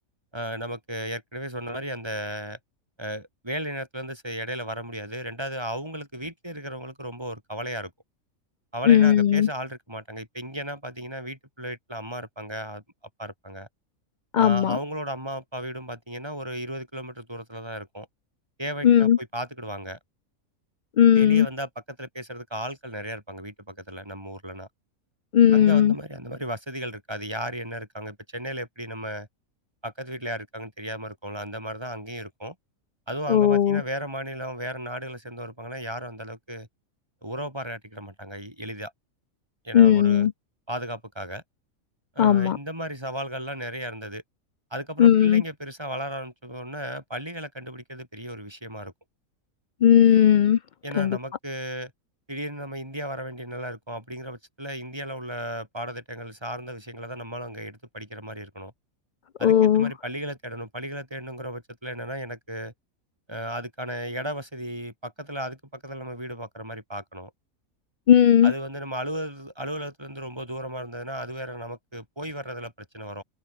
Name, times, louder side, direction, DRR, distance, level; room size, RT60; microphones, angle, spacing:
voice 1, 0.3-2.6 3.0-7.9 8.7-12.8 13.2-13.7 14.4-18.1 18.6-20.0 21.1-24.7 25.5-29.3 29.8-32.6 33.1-36.7 37.2-38.9 39.6-40.3 40.7-41.4 42.2-44.2 44.7-48.9 50.8-51.9 52.3-58.7 59.4-62.7 63.3-67.3 68.4-73.2, right 1 dB, 20° right, 7.1 m, -35 dB
voice 2, 8.9-9.5 14.3-14.8 18.8-19.2 21.0-21.5 25.3-25.9 33.3-33.8 39.7-40.3 42.2-42.6 45.0-45.4 49.8-50.6 51.0-51.2 59.4-59.9 68.1-68.5, left 9 dB, 85° left, 0.4 m, -17 dB
omnidirectional pair, 1.5 m